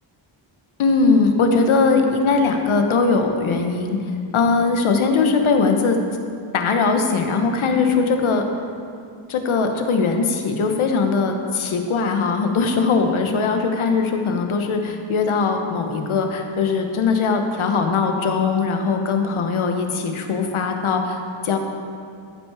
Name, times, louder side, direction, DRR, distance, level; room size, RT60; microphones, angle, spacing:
voice 1, 0.8-4.0 4.3-6.0 6.5-8.4 9.3-21.6, left 4 dB, 70° left, 4 dB, 1.2 m, -20 dB
14.5 x 6.0 x 4.9 m, 2.5 s
wide cardioid pair, 120°, 50 cm